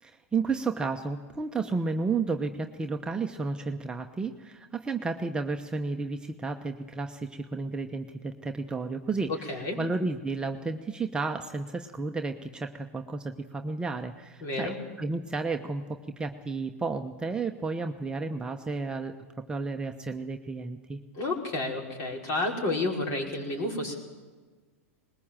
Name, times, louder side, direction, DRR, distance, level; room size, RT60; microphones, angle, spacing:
voice 1, 0.0-19.2 19.5-21.0, right 4 dB, 10° right, 3 dB, 1.0 m, -32 dB
voice 2, 9.5-9.8 14.4-14.8 21.1-24.0, left 2 dB, 45° left, 0 dB, 5.3 m, -30 dB
20.5 x 20.5 x 7.5 m, 1.4 s
hypercardioid pair, 105°, 7 cm